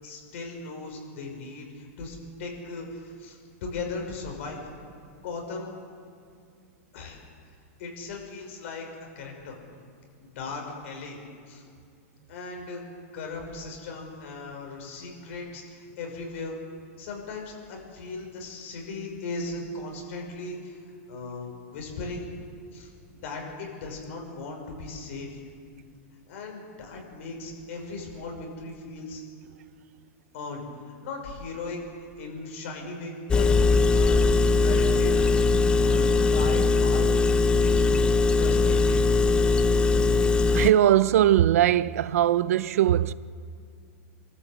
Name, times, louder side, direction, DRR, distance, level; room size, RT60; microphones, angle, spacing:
voice 1, 0.0-4.7 5.2-5.7 6.9-7.2 7.8-8.9 9.1-9.6 10.2-11.2 11.5-11.6 12.3-12.8 13.1-16.6 17.0-20.8 21.1-22.3 22.7-22.9 23.2-25.3 26.3-29.2 30.3-34.2 34.6-35.2 35.8-37.2 37.8-39.1, left 3 dB, 60° left, 5.8 m, -37 dB
Engine, 33.3-40.7, left 3 dB, 10° left, 0.6 m, -21 dB
voice 2, 40.5-43.1, right 12 dB, 80° right, 0.6 m, -20 dB
25.0 x 13.5 x 8.3 m
supercardioid pair, 160°, 8 cm